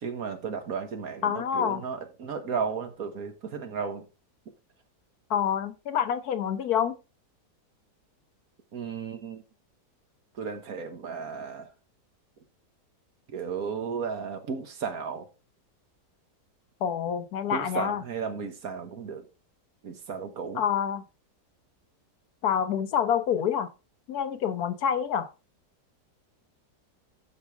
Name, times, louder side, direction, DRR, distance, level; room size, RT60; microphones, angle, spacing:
voice 1, 0.0-4.0 8.7-9.4 10.4-11.7 13.3-15.3 17.5-19.2 19.8-20.6, right 6 dB, 60° right, 1.6 m, -34 dB
voice 2, 1.2-1.8 5.3-7.0 16.8-18.0 20.5-21.0 22.4-23.7 24.1-25.3, left 8 dB, 70° left, 1.3 m, -27 dB
12.5 x 5.1 x 3.5 m
omnidirectional pair, 1.8 m